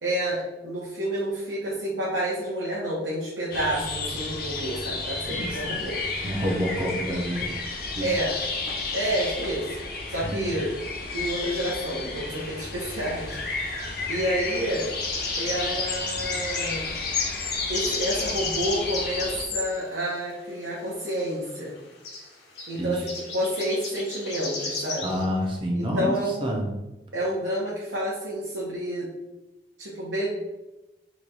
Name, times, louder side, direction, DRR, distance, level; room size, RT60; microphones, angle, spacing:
voice 1, 0.0-6.0 8.0-8.3 8.9-9.7 10.1-10.7 11.1-13.4 14.1-14.9 15.4-16.9 17.7-21.7 22.7-25.1 25.7-26.5 27.1-29.1 29.8-30.3, right 1 dB, 85° right, -6 dB, 0.8 m, -29 dB
sound 1, 3.5-19.4, left 3 dB, 55° left, 0.5 m, -32 dB
voice 2, 5.3-5.8 6.2-7.5 7.9-8.1 10.2-10.6 12.0-12.1 22.7-23.0 25.0-26.7, equal, 30° right, 0 dB, 0.5 m, -28 dB
sound 2, 12.7-12.8 14.5-19.7 21.5-21.6 21.8-21.9 22.0-22.3 22.6-22.8 23.1-25.2, left 3 dB, 75° left, 0.9 m, -33 dB
3.0 x 2.3 x 3.9 m, 1.0 s
head